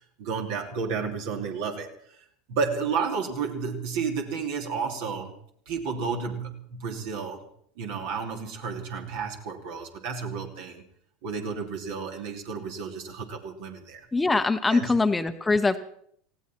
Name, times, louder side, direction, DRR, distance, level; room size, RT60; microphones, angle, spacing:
voice 1, 0.2-1.9 2.5-5.3 5.7-7.4 7.8-10.8 11.2-14.1 14.7-14.9, right 5 dB, 60° right, 2 dB, 2.9 m, -31 dB
voice 2, 14.1-15.8, left 3 dB, 15° left, 9 dB, 1.1 m, -23 dB
19.0 x 16.5 x 4.5 m, 0.64 s
hypercardioid pair, 80°, 0 cm